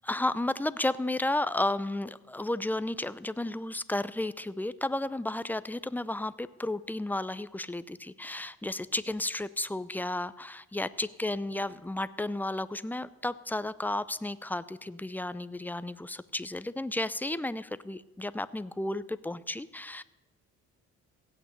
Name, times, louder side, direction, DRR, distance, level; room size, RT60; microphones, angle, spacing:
voice 1, 0.0-20.0, left 1 dB, 5° left, 15 dB, 0.5 m, -33 dB
16.0 x 8.8 x 8.0 m, 1.1 s
cardioid pair, 90°, 30 cm